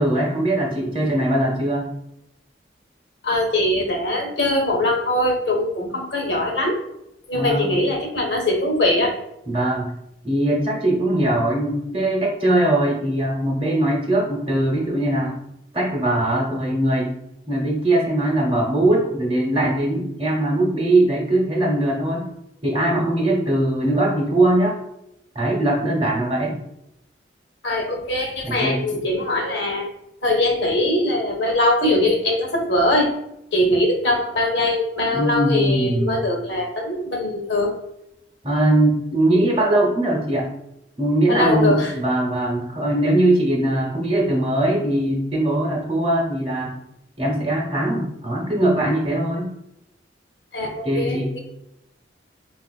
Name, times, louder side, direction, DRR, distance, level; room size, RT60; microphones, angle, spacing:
voice 1, 0.0-1.9 7.3-7.8 9.5-9.9 10.2-15.3 15.7-17.1 17.5-22.3 22.6-24.8 25.3-26.6 28.4-29.0 35.1-36.3 38.4-40.5 41.0-46.7 47.2-49.6 50.8-51.3, right 1 dB, 30° right, -2 dB, 0.8 m, -21 dB
voice 2, 3.2-6.8 7.3-9.1 27.6-29.9 30.2-33.1 33.5-37.7 41.3-41.9 50.5-51.4, left 1 dB, 75° left, 1 dB, 0.8 m, -21 dB
3.9 x 2.4 x 2.3 m, 0.83 s
head